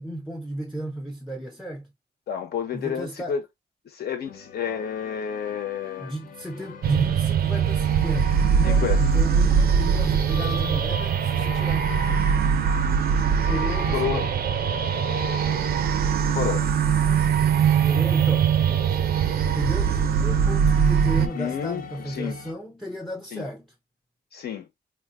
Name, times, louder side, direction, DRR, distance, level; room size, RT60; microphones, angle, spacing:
voice 1, 0.0-1.9 2.7-3.4 6.0-11.9 13.4-14.3 17.8-18.5 18.9-19.3 19.5-23.7, right 1 dB, ahead, 0.5 m, -33 dB
voice 2, 2.3-3.4 3.8-6.1 8.6-9.0 13.9-14.3 16.3-16.7 21.2-22.4 23.3-23.5 24.3-24.7, left 8 dB, 70° left, 1.0 m, -30 dB
sound 1, 4.3-22.5, left 8 dB, 55° left, 0.7 m, -40 dB
sound 2, 6.8-21.3, right 7 dB, 65° right, 0.5 m, -22 dB
3.7 x 2.4 x 2.4 m
wide cardioid pair, 130°, 17 cm